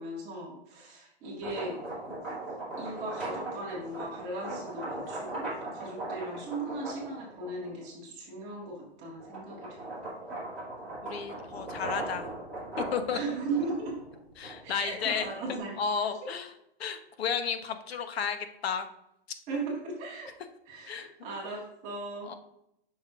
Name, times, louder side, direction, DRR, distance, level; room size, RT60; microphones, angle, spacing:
voice 1, 0.0-1.8 2.8-9.9 13.1-13.9 14.6-15.8 16.2-16.3 19.5-20.3 20.7-22.3, right 3 dB, 20° right, -4 dB, 1.6 m, -37 dB
sound 1, 1.2-7.8 8.4-15.6, right 2 dB, 5° left, 2.3 m, -39 dB
voice 2, 11.0-12.3 12.8-13.2 14.4-16.5 16.8-18.9 20.9-21.1 22.3-22.4, left 6 dB, 70° left, 9 dB, 1.0 m, -33 dB
7.3 x 6.4 x 2.4 m, 0.81 s
hypercardioid pair, 170°, 32 cm